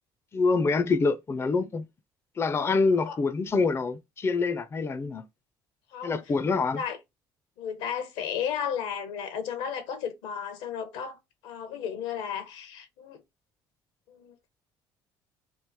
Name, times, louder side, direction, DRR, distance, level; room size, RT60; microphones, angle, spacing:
voice 1, 0.3-1.9 2.4-5.2 6.0-6.8, left 4 dB, 25° left, 0.4 m, -26 dB
voice 2, 5.9-6.2 6.8-7.0 7.6-11.2 11.4-13.2 14.1-14.4, left 8 dB, 80° left, 0.8 m, -34 dB
3.1 x 2.4 x 3.4 m
supercardioid pair, 75°, 9 cm